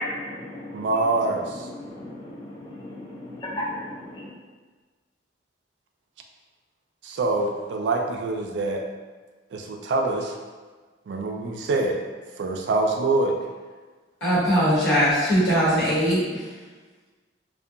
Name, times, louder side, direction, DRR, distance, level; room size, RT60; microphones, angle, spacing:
voice 1, 0.0-0.8 1.8-2.3 2.7-3.8 4.1-4.3, left 1 dB, 25° left, -5 dB, 0.3 m, -34 dB
voice 2, 0.7-1.7 7.0-8.8 9.5-10.3 11.1-12.0 12.4-13.4, right 2 dB, 70° right, 3 dB, 0.3 m, -25 dB
voice 3, 14.2-16.4, equal, 80° left, -9 dB, 1.1 m, -21 dB
2.7 x 2.1 x 2.4 m, 1.4 s
head